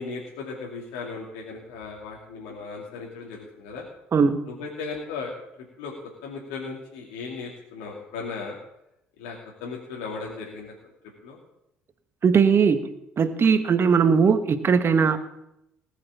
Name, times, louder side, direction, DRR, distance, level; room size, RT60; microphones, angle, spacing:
voice 1, 0.0-3.8 4.4-5.3 5.8-5.9 6.2-8.6 9.2-10.7 11.2-11.4, left 4 dB, 70° left, -2 dB, 2.5 m, -36 dB
voice 2, 12.2-12.9 13.2-15.2, right 6 dB, 40° right, 10 dB, 1.4 m, -19 dB
18.5 x 6.5 x 7.4 m, 0.82 s
hypercardioid pair, 55°, 6 cm